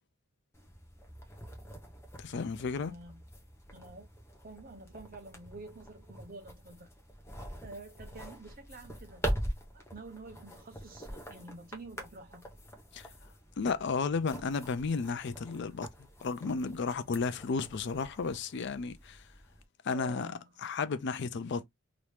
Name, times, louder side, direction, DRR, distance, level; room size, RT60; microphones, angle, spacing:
sound 1, 0.5-19.6, equal, 10° left, 0.7 m, -44 dB
voice 1, 2.2-2.9 12.9-13.1 13.6-15.9 16.2-19.2 19.8-21.7, left 4 dB, 55° left, 0.4 m, -33 dB
voice 2, 2.7-3.2 3.7-4.1 4.4-6.9 7.6-9.2 9.6-12.6 19.9-20.5, right 2 dB, 40° right, 0.8 m, -49 dB
3.0 x 2.6 x 3.3 m
head